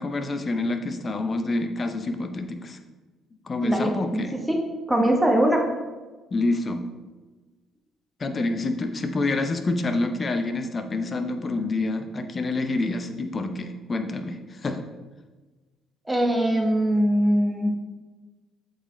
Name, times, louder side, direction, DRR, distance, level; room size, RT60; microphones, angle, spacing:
voice 1, 0.0-2.8 3.5-4.4 6.3-6.8 8.2-14.8, left 2 dB, 35° left, 7 dB, 0.7 m, -27 dB
voice 2, 3.6-3.9 4.5-4.6 4.9-5.7 16.1-17.7, right 1 dB, 5° right, 1 dB, 1.0 m, -21 dB
7.8 x 4.1 x 3.1 m, 1.3 s
supercardioid pair, 70°, 0 cm